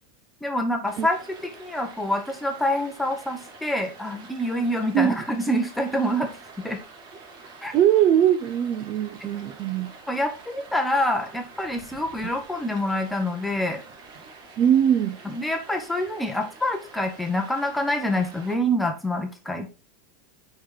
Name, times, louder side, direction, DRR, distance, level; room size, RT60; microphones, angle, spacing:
voice 1, 0.4-1.2 1.6-6.3 6.6-6.8 7.6-7.7 10.1-13.8 15.2-19.7, left 1 dB, 5° left, 1.0 m, -26 dB
Stream, 0.9-18.5, right 4 dB, 55° right, 2.4 m, -47 dB
voice 2, 7.7-9.9 14.6-15.2, right 10 dB, 35° right, 0.5 m, -21 dB
9.4 x 4.7 x 3.9 m
supercardioid pair, 155°, 0 cm